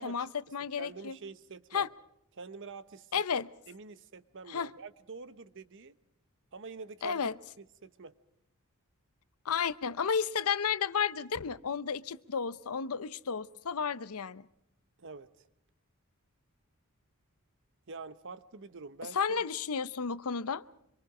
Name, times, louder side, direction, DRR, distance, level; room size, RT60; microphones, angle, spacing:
voice 1, 0.0-1.2 1.7-1.9 3.1-3.5 4.5-4.7 7.0-7.3 9.4-14.5 19.1-20.6, left 6 dB, 75° left, 0.7 m, -32 dB
voice 2, 0.8-1.9 2.3-3.2 3.7-6.0 6.5-7.2 7.6-8.1 15.0-15.5 17.9-19.4, right 4 dB, 55° right, 1.0 m, -46 dB
25.5 x 23.5 x 4.9 m
head